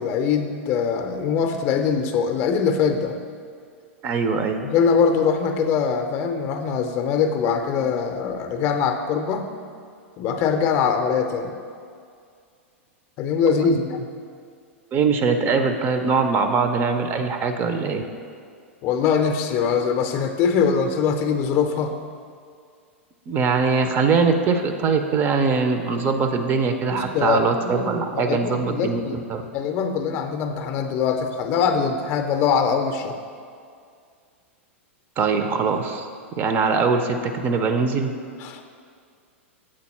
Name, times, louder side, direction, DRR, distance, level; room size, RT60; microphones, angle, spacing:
voice 1, 0.0-3.2 4.6-9.5 10.2-11.5 13.2-14.1 18.8-21.9 26.9-29.2 29.5-33.2 38.4-38.6, left 6 dB, 35° left, 6 dB, 0.5 m, -22 dB
voice 2, 4.0-4.6 13.6-13.7 14.9-18.0 23.3-29.0 29.3-29.4 35.2-36.0 36.4-38.1, right 4 dB, 30° right, 6 dB, 0.4 m, -22 dB
7.6 x 4.2 x 4.1 m, 2.2 s
figure-of-eight pair, 95°, 7 cm